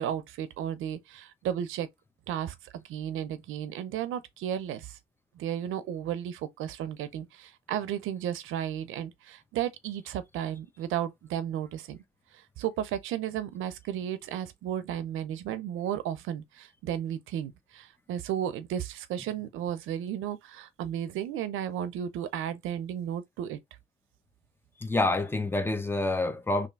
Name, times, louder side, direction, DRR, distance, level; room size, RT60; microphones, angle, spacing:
voice 1, 0.0-1.9 2.3-5.0 5.4-12.0 12.6-23.6, right 10 dB, 90° right, 0.7 m, -34 dB
voice 2, 24.8-26.7, left 2 dB, 10° left, 0.8 m, -27 dB
3.4 x 2.7 x 4.0 m
cardioid pair, 90°, 20 cm